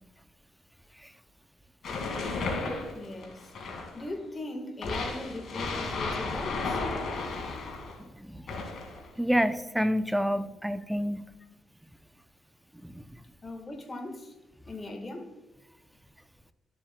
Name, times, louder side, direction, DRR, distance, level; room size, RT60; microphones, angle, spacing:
sound 1, 1.8-4.1 4.8-8.0 8.5-9.1, left 3 dB, 60° left, 2.1 m, -33 dB
voice 1, 2.9-6.8 13.4-14.3 14.7-15.3, left 2 dB, 25° left, 1.5 m, -39 dB
voice 2, 8.0-8.5 9.2-11.2 12.8-13.0, equal, 5° right, 0.5 m, -28 dB
12.5 x 7.5 x 2.2 m
cardioid pair, 90°, 0 cm